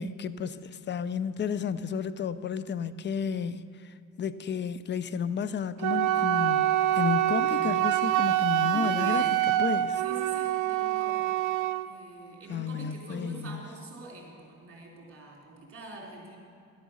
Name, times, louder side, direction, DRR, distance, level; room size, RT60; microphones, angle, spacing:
voice 1, 0.0-3.6 4.2-9.2 9.6-10.0 12.5-13.6, left 7 dB, 40° left, 15 dB, 0.5 m, -32 dB
Wind instrument woodwind instrument, 5.8-11.9, right 13 dB, 90° right, 0.5 m, -26 dB
voice 2, 8.7-9.4 10.0-11.3 11.8-16.4, right 3 dB, 45° right, -2 dB, 3.3 m, -43 dB
12.0 x 8.0 x 6.3 m, 2.4 s
cardioid pair, 90°, 30 cm